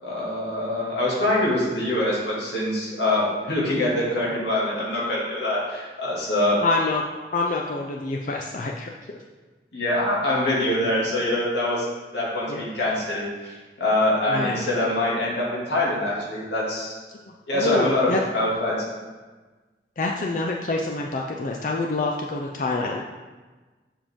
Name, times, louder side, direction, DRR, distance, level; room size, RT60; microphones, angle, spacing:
voice 1, 0.0-6.6 9.7-11.9 12.1-16.9 17.5-18.8, left 1 dB, 70° left, -6 dB, 2.2 m, -24 dB
voice 2, 6.6-7.0 7.3-8.9 12.5-12.7 14.3-14.6 17.5-18.2 20.0-23.0, left 3 dB, 45° left, 0 dB, 0.4 m, -26 dB
7.3 x 5.2 x 3.6 m, 1.3 s
head